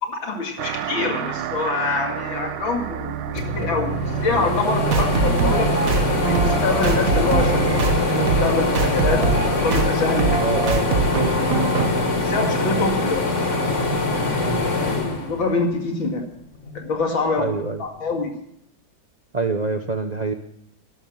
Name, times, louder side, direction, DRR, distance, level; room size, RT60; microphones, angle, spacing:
voice 1, 0.0-3.9 4.2-5.7 6.3-7.8 8.4-10.4 12.2-13.3 15.3-16.2 16.7-17.5 17.8-18.3, left 3 dB, 75° left, 3 dB, 3.1 m, -25 dB
sound 1, 0.6-11.6, right 9 dB, 85° right, 1.6 m, -30 dB
sound 2, 3.0-3.1 3.4-16.0 16.4-17.5, left 3 dB, 40° left, 2.0 m, -23 dB
sound 3, 4.9-11.9, right 4 dB, 45° right, 1.6 m, -23 dB
voice 2, 10.4-11.1 14.4-14.7 17.4-17.8 19.3-20.3, right 3 dB, 65° right, 7 dB, 0.4 m, -25 dB
12.5 x 11.5 x 7.2 m, 0.72 s
omnidirectional pair, 2.2 m